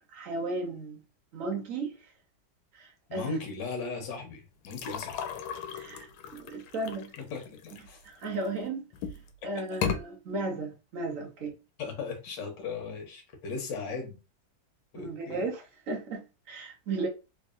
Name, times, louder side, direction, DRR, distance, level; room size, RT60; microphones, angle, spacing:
voice 1, 0.1-1.0 1.3-2.0 2.7-3.3 5.7-7.1 8.0-8.9 9.4-11.5 15.0-17.1, right 3 dB, 55° right, 1.0 m, -35 dB
voice 2, 3.1-5.2 7.2-8.0 11.8-14.2 14.9-15.5, left 4 dB, 65° left, 1.7 m, -37 dB
sound 1, 4.6-8.5 8.9-9.3 9.7-10.0, left 7 dB, 90° left, 1.4 m, -36 dB
3.7 x 3.2 x 2.5 m
omnidirectional pair, 2.1 m